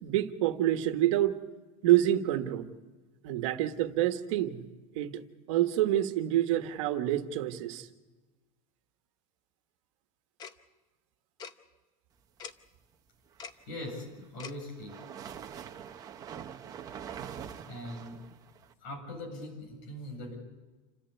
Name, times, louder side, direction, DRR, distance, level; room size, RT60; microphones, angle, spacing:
voice 1, 0.0-1.4 1.8-2.7 3.2-4.6 4.9-5.2 5.5-7.9, right 13 dB, 70° right, 8 dB, 1.5 m, -27 dB
Tick-tock, 10.4-10.5 11.4-11.5 12.4-12.5 13.4-13.6 14.4-14.5, left 6 dB, 25° left, 0.7 m, -42 dB
sound 1, 13.6-18.7, right 8 dB, 20° right, 0.9 m, -44 dB
voice 2, 13.7-15.0 17.7-18.2 18.8-20.4, left 1 dB, 55° left, 2 dB, 7.7 m, -41 dB
28.0 x 14.0 x 8.3 m, 1.2 s
supercardioid pair, 175°, 17 cm